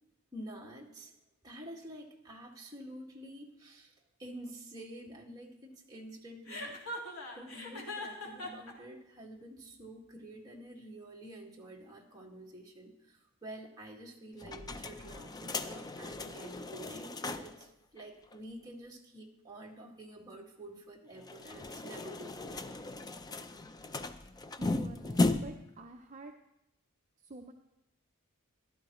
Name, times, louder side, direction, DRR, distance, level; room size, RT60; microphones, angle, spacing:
voice 1, 0.3-1.2 1.4-6.8 7.3-22.8, right 1 dB, 20° right, -2 dB, 1.8 m, -49 dB
Chuckle chortle, 6.5-8.7, left 1 dB, 80° left, 2.0 m, -40 dB
sound 1, 14.4-17.7 18.0-18.1 18.3-18.4 21.2-25.7, left 2 dB, 20° left, 0.4 m, -36 dB
voice 2, 24.6-26.3 27.2-27.5, right 2 dB, 35° right, 4 dB, 0.5 m, -48 dB
14.0 x 12.0 x 3.0 m, 0.87 s
head